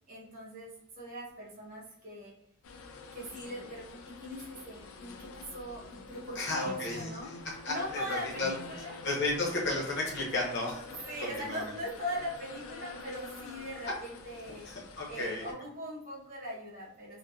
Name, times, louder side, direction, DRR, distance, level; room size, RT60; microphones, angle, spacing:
voice 1, 0.1-2.3 3.1-7.3 7.7-9.0 11.1-14.7 15.0-17.2, equal, 45° right, -5 dB, 0.7 m, -40 dB
sound 1, 2.6-15.5, left 3 dB, 90° left, 0.4 m, -47 dB
voice 2, 6.3-7.4 7.6-8.5 9.0-10.8 11.2-11.7 14.7-15.4, left 2 dB, 55° left, -3 dB, 0.8 m, -33 dB
2.7 x 2.2 x 2.3 m, 0.75 s
head